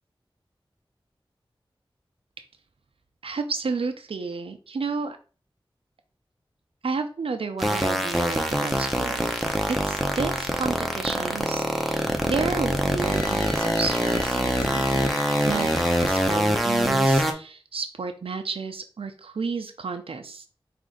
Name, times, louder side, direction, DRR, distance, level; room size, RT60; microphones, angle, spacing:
voice 1, 3.2-5.2 6.8-9.3 9.7-15.1 15.5-15.7 16.0-20.5, right 4 dB, 90° right, 7 dB, 0.4 m, -31 dB
sound 1, 7.6-17.3, equal, ahead, 0.7 m, -24 dB
sound 2, 13.0-16.8, left 2 dB, 60° left, 1.1 m, -37 dB
5.0 x 2.5 x 3.7 m, 0.37 s
wide cardioid pair, 65°, 9 cm